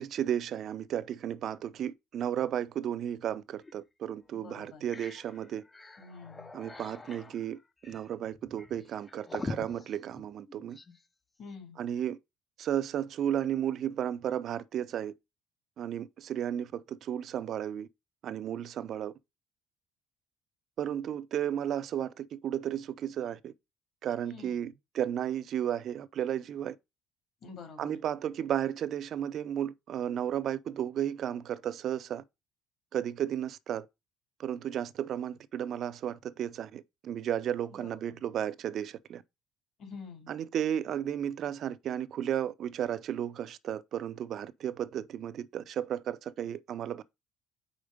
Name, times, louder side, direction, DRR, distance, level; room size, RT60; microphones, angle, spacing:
voice 1, 0.0-5.6 6.5-10.8 11.8-12.2 12.6-15.1 15.8-17.9 18.2-19.1 20.8-23.5 24.0-26.8 27.8-32.2 32.9-33.9 34.4-39.2 40.3-47.0, right 10 dB, 50° right, 0.5 m, -33 dB
sound 1, 3.6-3.8 4.2-4.3 4.6-11.0, left 3 dB, 15° left, 0.5 m, -44 dB
voice 2, 4.3-4.8 6.0-6.5 11.4-11.8 24.2-24.7 27.4-28.0 37.8-38.2 39.8-40.3, left 5 dB, 55° left, 2.4 m, -47 dB
5.1 x 4.3 x 5.0 m
cardioid pair, 120°, 0 cm